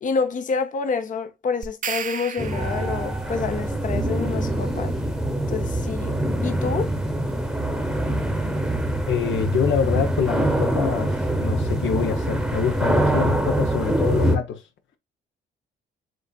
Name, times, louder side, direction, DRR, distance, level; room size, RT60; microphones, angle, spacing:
voice 1, 0.0-4.9 5.5-6.9, left 5 dB, 40° left, 0.8 m, -28 dB
sound 1, 1.6-3.2, right 7 dB, 40° right, 0.6 m, -33 dB
sound 2, 2.4-14.4, right 1 dB, 5° right, 1.0 m, -24 dB
voice 2, 9.1-14.6, left 7 dB, 75° left, 1.0 m, -25 dB
7.8 x 2.7 x 2.4 m
cardioid pair, 90°, 20 cm